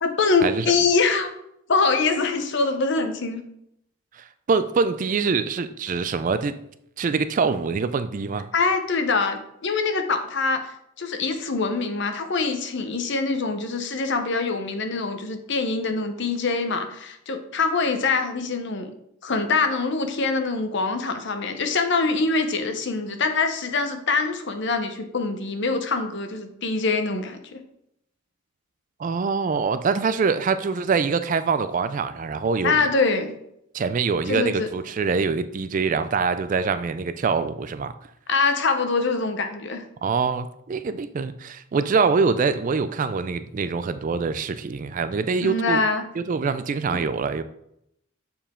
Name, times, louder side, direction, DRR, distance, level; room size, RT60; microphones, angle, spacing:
voice 1, 0.0-1.3 1.7-3.4 8.5-18.9 19.2-27.6 32.6-33.3 34.3-34.7 38.3-39.8 45.4-46.0 46.9-47.0, left 4 dB, 55° left, 7 dB, 0.8 m, -24 dB
voice 2, 4.1-6.5 7.0-8.5 29.0-32.9 33.7-37.9 40.0-45.8 46.2-47.4, right 5 dB, 40° right, 12 dB, 0.3 m, -24 dB
7.0 x 4.7 x 3.6 m, 0.76 s
head